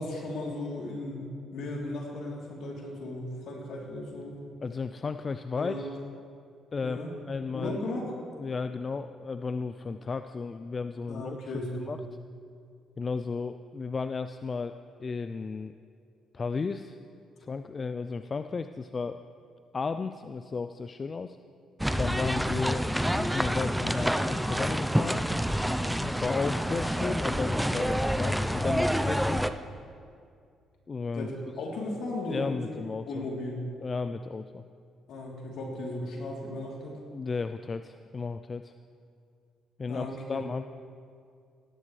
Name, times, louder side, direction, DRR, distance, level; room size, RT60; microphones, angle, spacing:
voice 1, 0.0-4.4 5.6-5.9 6.8-7.1 7.5-8.1 11.1-11.9 31.1-32.7 33.1-33.7 35.1-37.0 39.9-40.4, left 1 dB, 70° left, -2 dB, 3.4 m, -36 dB
voice 2, 4.6-6.0 6.7-7.0 7.3-7.8 8.4-12.0 13.0-15.7 16.3-17.0 17.4-19.2 19.7-21.4 22.0-22.9 23.1-25.2 26.0-29.4 30.9-31.3 32.3-33.2 33.8-34.6 37.1-38.7 39.8-40.7, left 4 dB, 40° left, 10 dB, 0.5 m, -34 dB
sound 1, 21.8-29.5, equal, ahead, 0.7 m, -28 dB
17.5 x 15.5 x 3.3 m, 2.3 s
hypercardioid pair, 55°, 0 cm